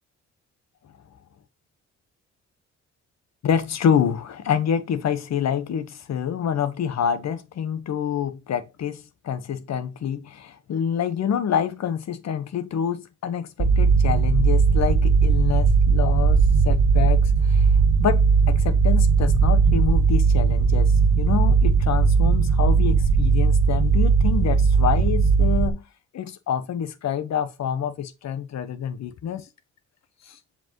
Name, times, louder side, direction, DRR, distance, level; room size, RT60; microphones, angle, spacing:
voice 1, 3.4-17.7 18.0-25.8 26.1-29.5 30.3-30.4, left 8 dB, 60° left, 1.3 m, -27 dB
sound 1, 13.6-25.7, right 5 dB, 60° right, 1.2 m, -18 dB
7.6 x 5.1 x 3.1 m
cardioid pair, 90°, 30 cm